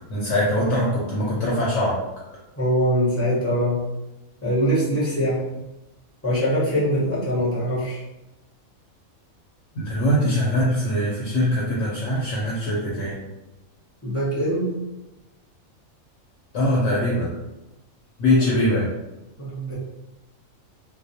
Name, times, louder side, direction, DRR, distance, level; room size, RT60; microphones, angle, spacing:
voice 1, 0.1-2.0 9.7-13.2 16.5-17.3 18.2-18.9, left 1 dB, 65° left, -5 dB, 0.8 m, -22 dB
voice 2, 2.6-3.8 4.4-5.6 6.2-8.0 14.0-14.8 18.4-18.6 19.4-19.8, equal, 15° left, -9 dB, 0.5 m, -23 dB
2.3 x 2.0 x 2.6 m, 0.99 s
omnidirectional pair, 1.5 m